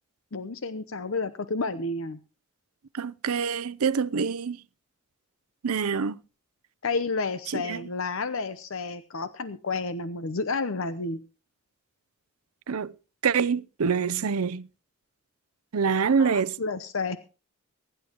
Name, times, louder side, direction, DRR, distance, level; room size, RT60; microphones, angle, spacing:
voice 1, 0.3-2.2 6.8-11.2 16.2-17.2, left 3 dB, 65° left, 0.8 m, -31 dB
voice 2, 2.9-4.6 5.6-6.2 7.5-7.8 12.7-12.9 13.2-14.7 15.7-16.6, right 6 dB, 85° right, 0.6 m, -25 dB
23.0 x 11.0 x 3.0 m
head